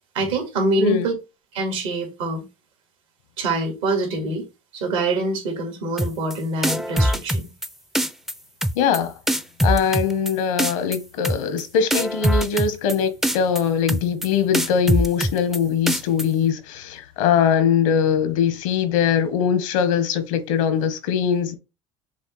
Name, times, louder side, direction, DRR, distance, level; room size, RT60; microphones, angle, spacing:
voice 1, 0.1-1.1 1.5-2.4 3.4-4.5 4.7-7.5, right 2 dB, 85° right, 1.8 m, -25 dB
sound 1, 6.0-6.3 6.6-7.7 8.0-8.3 8.6-9.0 9.3-10.3 10.6-11.0 11.2-11.6 11.9-12.9 13.2-13.6 13.9-14.3 14.5-15.6 15.9-16.2, equal, ahead, 0.3 m, -22 dB
voice 2, 8.8-9.1 9.6-21.6, left 7 dB, 85° left, 1.0 m, -21 dB
6.2 x 2.1 x 3.2 m
supercardioid pair, 95°, 16 cm